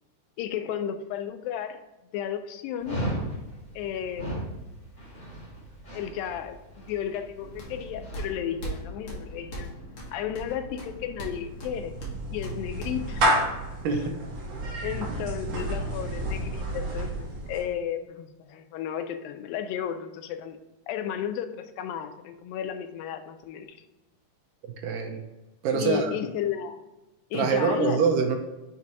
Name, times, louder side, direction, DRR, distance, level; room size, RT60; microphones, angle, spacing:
voice 1, 0.4-1.8 2.1-3.0 3.8-4.4 5.9-9.7 10.1-12.0 12.3-13.4 14.8-20.6 20.9-23.8 25.7-26.8 27.3-28.0, left 9 dB, 90° left, 8 dB, 2.3 m, -33 dB
Dog, 2.8-8.2, equal, 30° left, 1.4 m, -36 dB
sound 1, 7.4-13.6, equal, 55° left, 1.4 m, -40 dB
Clapping / Meow, 11.3-17.7, right 1 dB, 60° right, 2.1 m, -30 dB
voice 2, 24.8-25.2 25.6-26.1 27.3-28.4, right 5 dB, 80° right, 4 dB, 2.1 m, -24 dB
7.4 x 2.8 x 4.5 m, 1.0 s
omnidirectional pair, 4.0 m